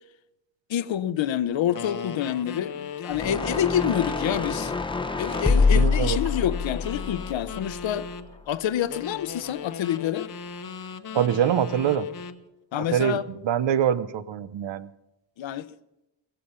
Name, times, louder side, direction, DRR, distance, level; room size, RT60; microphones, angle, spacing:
voice 1, 0.7-4.7 5.2-8.1 8.5-10.3 12.7-13.2 15.4-15.7, left 10 dB, 80° left, 0.8 m, -27 dB
sound 1, 1.7-4.8 5.3-8.3 8.9-12.4, left 6 dB, 45° left, 0.9 m, -38 dB
sound 2, 3.1-8.4, left 4 dB, 10° left, 0.8 m, -26 dB
voice 2, 5.7-6.2 11.1-12.1 12.9-13.2 13.4-14.9, right 9 dB, 75° right, 0.9 m, -24 dB
16.5 x 15.0 x 5.7 m
wide cardioid pair, 130°, 46 cm